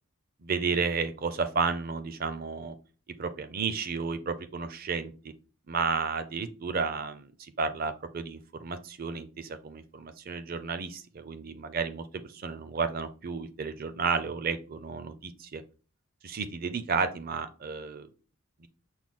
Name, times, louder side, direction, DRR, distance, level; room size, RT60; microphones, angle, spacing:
voice 1, 0.4-2.7 3.2-5.1 5.7-15.6 16.2-18.1 18.6-18.7, right 5 dB, 45° right, 10 dB, 0.5 m, -32 dB
6.1 x 2.2 x 3.7 m, 0.37 s
head